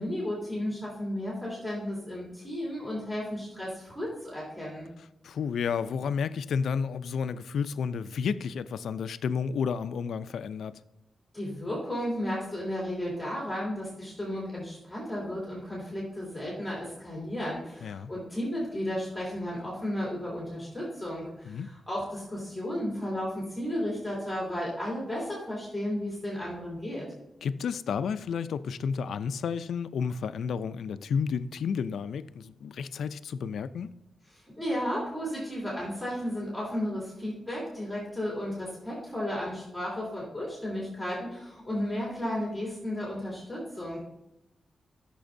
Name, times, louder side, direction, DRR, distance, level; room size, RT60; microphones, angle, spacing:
voice 1, 0.0-4.9 11.3-27.0 34.6-44.0, equal, 5° left, 3.1 m, -33 dB
voice 2, 5.2-10.8 17.8-18.1 21.5-21.7 27.4-33.9, left 6 dB, 90° left, 0.4 m, -31 dB
14.0 x 6.8 x 2.6 m
wide cardioid pair, 160°, 0 cm